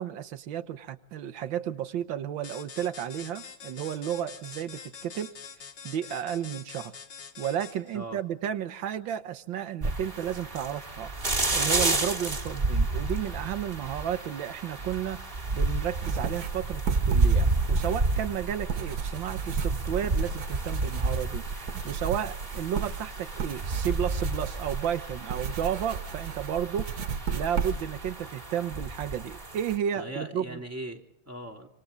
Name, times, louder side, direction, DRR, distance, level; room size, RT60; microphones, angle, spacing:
voice 1, 0.0-5.3 5.8-6.9 7.4-11.1 11.5-15.2 15.5-26.9 27.3-30.6, right 9 dB, 90° right, 10 dB, 1.8 m, -32 dB
sound 1, 2.4-8.0, left 6 dB, 80° left, 2.7 m, -45 dB
sound 2, 9.8-29.8, right 2 dB, 30° right, 2.9 m, -31 dB
sound 3, 16.0-28.1, right 6 dB, 55° right, 1.5 m, -34 dB
voice 2, 30.0-31.7, right 1 dB, 10° right, 1 dB, 2.9 m, -39 dB
26.5 x 26.0 x 3.9 m, 0.73 s
omnidirectional pair, 2.0 m